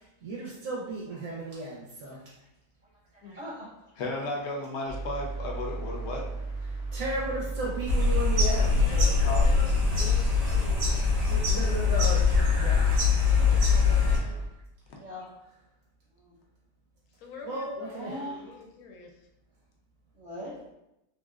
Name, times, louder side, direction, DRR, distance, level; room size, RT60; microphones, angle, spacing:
voice 1, 0.2-2.2 6.9-9.1 10.0-10.1 11.3-12.8 17.4-18.1, right 2 dB, 70° right, -5 dB, 1.0 m, -34 dB
voice 2, 3.2-3.7 14.9-15.3 16.1-16.3 17.8-18.6 20.1-20.6, equal, 40° right, -7 dB, 0.6 m, -41 dB
voice 3, 4.0-6.3 9.2-9.4, left 1 dB, 60° left, -1 dB, 0.8 m, -34 dB
sound 1, 4.9-14.5, right 3 dB, 5° right, 0.3 m, -35 dB
sound 2, 7.9-14.2, left 5 dB, 85° right, 1.5 m, -23 dB
voice 4, 8.7-11.0 13.3-14.5 17.2-19.1, left 4 dB, 80° left, 1 dB, 1.0 m, -45 dB
3.2 x 2.5 x 2.3 m, 0.89 s
omnidirectional pair, 1.5 m